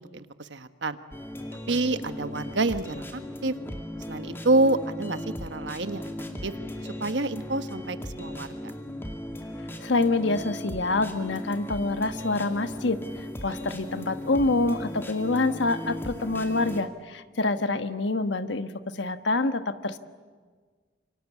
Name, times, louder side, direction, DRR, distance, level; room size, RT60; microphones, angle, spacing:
voice 1, 0.5-1.0 1.7-3.5 4.1-6.0 6.4-6.5 7.0-8.7 17.9-18.0, right 2 dB, 80° right, 10 dB, 1.2 m, -27 dB
sound 1, 1.1-16.8, left 1 dB, 10° left, 2.1 m, -37 dB
voice 2, 9.8-13.0 13.4-20.0, left 2 dB, 80° left, 9 dB, 1.3 m, -26 dB
27.5 x 25.0 x 8.4 m, 1.5 s
head